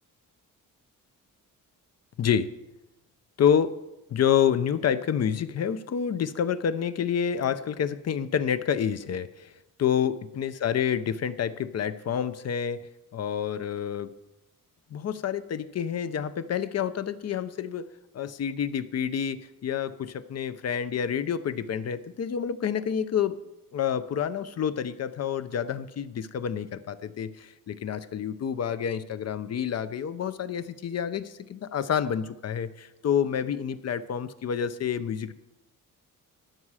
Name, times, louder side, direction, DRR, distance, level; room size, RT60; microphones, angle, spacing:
voice 1, 2.2-2.5 3.4-3.7 4.1-9.5 9.8-12.8 13.1-14.1 14.9-17.9 18.1-23.4 23.7-35.3, left 8 dB, 45° left, 13 dB, 0.6 m, -28 dB
13.0 x 9.5 x 4.9 m, 0.96 s
wide cardioid pair, 165°, 35 cm